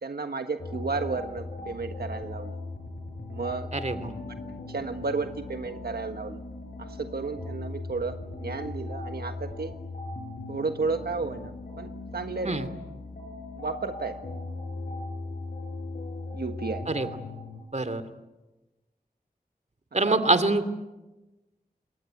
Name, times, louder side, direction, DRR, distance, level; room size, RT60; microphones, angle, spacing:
voice 1, 0.0-2.6 3.3-3.7 4.7-6.4 6.8-9.7 10.5-12.5 13.6-14.2 16.3-16.9 20.1-20.2, right 4 dB, 85° right, 6 dB, 1.5 m, -32 dB
sound 1, 0.6-17.6, left 2 dB, 80° left, 6.3 m, -38 dB
voice 2, 3.7-4.1 12.5-12.7 16.9-17.1 17.7-18.0 19.9-20.7, right 2 dB, 45° right, 12 dB, 2.6 m, -25 dB
27.5 x 22.0 x 9.6 m, 1.1 s
wide cardioid pair, 65°, 16 cm